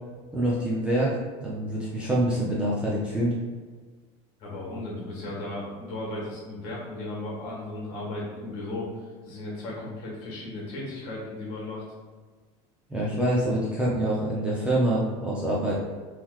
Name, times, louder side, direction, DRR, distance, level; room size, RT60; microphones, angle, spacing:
voice 1, 0.3-1.2 1.4-3.3 12.9-15.7, right 1 dB, 5° right, -7 dB, 0.4 m, -25 dB
voice 2, 4.4-11.8, left 2 dB, 55° left, -4 dB, 1.3 m, -35 dB
3.7 x 3.0 x 2.3 m, 1.4 s
cardioid pair, 180°, 15 cm